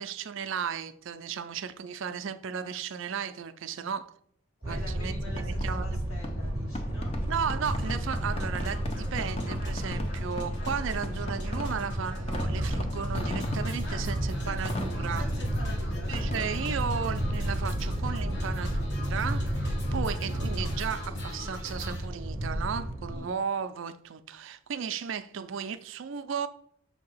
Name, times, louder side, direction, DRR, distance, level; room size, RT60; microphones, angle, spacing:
voice 1, 0.0-4.1 4.7-5.9 7.2-15.3 16.1-26.5, right 7 dB, 65° right, 0.4 m, -35 dB
voice 2, 4.6-7.2 13.8-14.1 14.4-17.0 23.1-23.4, left 2 dB, 85° left, 2.5 m, -46 dB
sound 1, 4.6-23.2, equal, 10° right, 0.7 m, -32 dB
Fireworks, 5.3-18.9, left 1 dB, 30° left, 0.7 m, -40 dB
sound 2, 7.6-22.1, left 1 dB, 55° left, 1.2 m, -43 dB
6.5 x 2.8 x 5.5 m
head